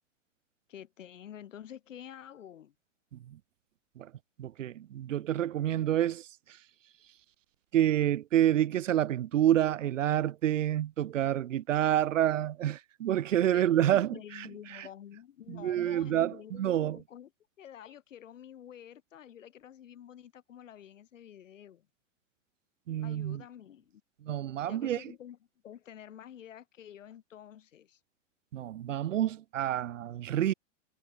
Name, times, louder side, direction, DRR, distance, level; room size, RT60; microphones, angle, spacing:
voice 1, 0.7-2.7 13.5-17.3 17.6-21.9 23.0-24.0 24.6-25.4 25.6-28.0, left 10 dB, 85° left, 6.4 m, -49 dB
voice 2, 4.4-6.3 7.7-14.1 15.5-17.0 22.9-23.4 24.2-25.0 28.5-30.5, right 11 dB, 85° right, 1.3 m, -28 dB
hypercardioid pair, 130°, 37 cm